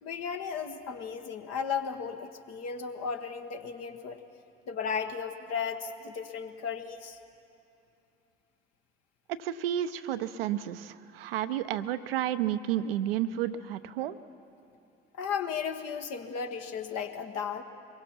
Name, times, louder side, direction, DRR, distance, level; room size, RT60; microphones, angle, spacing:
voice 1, 0.0-4.2 4.7-7.2 15.2-17.6, left 6 dB, 55° left, 6 dB, 1.4 m, -35 dB
voice 2, 9.3-14.2, right 11 dB, 75° right, 11 dB, 0.7 m, -31 dB
23.5 x 21.5 x 5.9 m, 2.7 s
figure-of-eight pair, 45°, 30 cm